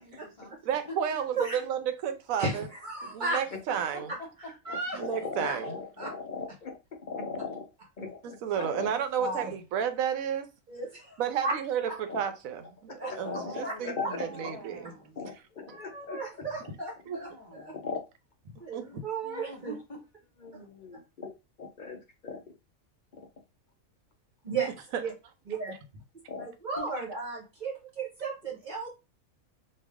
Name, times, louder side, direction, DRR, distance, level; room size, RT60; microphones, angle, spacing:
voice 1, 0.0-0.6 0.9-1.0 3.7-4.8 13.1-15.2 17.0-17.8 19.2-20.0 26.8-26.9, equal, 25° left, 1.2 m, -45 dB
voice 2, 0.6-2.7 3.0-4.1 4.9-5.7 8.2-10.5 11.2-12.9 13.2-14.9 17.1-17.2 18.7-18.8 24.9-25.0, right 8 dB, 80° right, 1.0 m, -32 dB
voice 3, 2.4-3.4 4.6-5.0 5.4-5.6 6.0-6.1 8.5-8.6 9.2-9.5 10.7-11.6 11.9-12.0 13.0-13.1 13.6-14.1 15.7-17.7 18.6-19.8 24.4-24.7 25.0-25.1 25.5-25.8 26.4-28.9, right 3 dB, 40° right, 0.8 m, -34 dB
voice 4, 5.0-6.7 7.1-7.6 8.0-8.9 9.4-9.5 12.1-12.2 12.9-13.5 13.8-14.5 15.2-16.2 17.8-18.0 20.4-21.3 21.6-22.4 26.3-26.5, left 4 dB, 55° left, 0.5 m, -39 dB
3.3 x 2.4 x 3.5 m
omnidirectional pair, 1.4 m